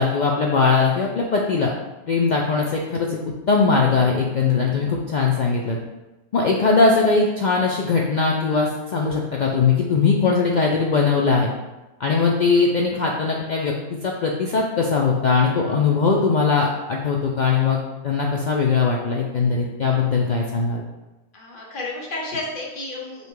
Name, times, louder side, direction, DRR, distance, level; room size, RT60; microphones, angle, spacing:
voice 1, 0.0-1.7 2.1-3.2 3.5-5.8 6.3-11.5 12.0-13.7 14.0-17.8 18.0-20.8, left 4 dB, 75° left, -1 dB, 0.4 m, -20 dB
voice 2, 21.3-23.3, left 2 dB, 45° left, -3 dB, 1.1 m, -31 dB
5.4 x 2.2 x 4.5 m, 1.1 s
omnidirectional pair, 1.3 m